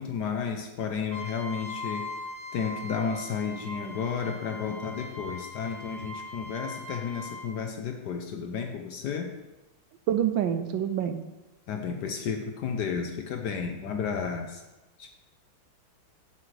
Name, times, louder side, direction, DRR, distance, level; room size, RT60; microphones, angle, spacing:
voice 1, 0.0-2.1 2.5-9.3 11.7-14.6 15.0-15.1, left 6 dB, 65° left, 4 dB, 1.1 m, -32 dB
Trumpet, 1.1-7.5, left 2 dB, 15° right, 1.8 m, -40 dB
voice 2, 10.1-11.2, right 9 dB, 75° right, 9 dB, 1.2 m, -26 dB
9.5 x 7.6 x 3.3 m, 1.0 s
omnidirectional pair, 2.3 m